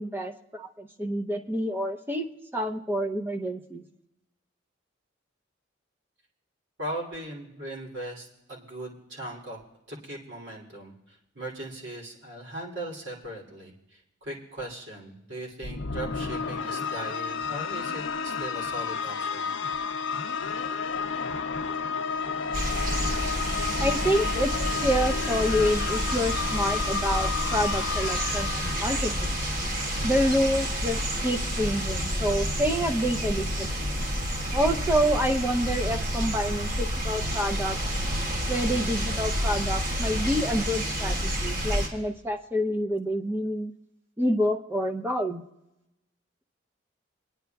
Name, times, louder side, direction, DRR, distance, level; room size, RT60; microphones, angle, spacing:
voice 1, 0.0-3.8 23.8-24.5 24.8-29.4 30.0-33.9 34.5-37.8 38.5-43.7 44.2-45.4, equal, 10° right, 5 dB, 0.6 m, -28 dB
voice 2, 6.8-10.9 11.3-19.5, right 1 dB, 65° right, -3 dB, 3.0 m, -39 dB
sound 1, 15.6-30.0, left 5 dB, 70° left, 0.6 m, -32 dB
sound 2, 22.5-41.9, equal, 45° right, 2.8 m, -29 dB
24.5 x 10.5 x 2.3 m, 0.91 s
head